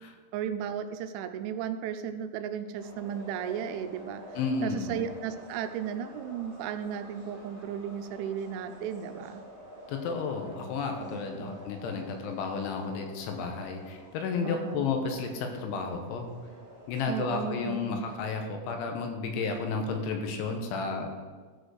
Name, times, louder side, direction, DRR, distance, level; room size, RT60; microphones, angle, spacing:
voice 1, 0.3-4.2 4.6-9.4 11.0-11.5 14.4-14.8 17.1-18.1 20.8-21.1, right 8 dB, 85° right, 9 dB, 2.9 m, -35 dB
sound 1, 2.8-18.2, equal, 10° left, 2.8 m, -49 dB
voice 2, 4.3-5.0 9.9-16.3 16.9-21.1, left 4 dB, 80° left, 4 dB, 3.4 m, -32 dB
13.0 x 5.1 x 6.3 m, 1.5 s
omnidirectional pair, 5.5 m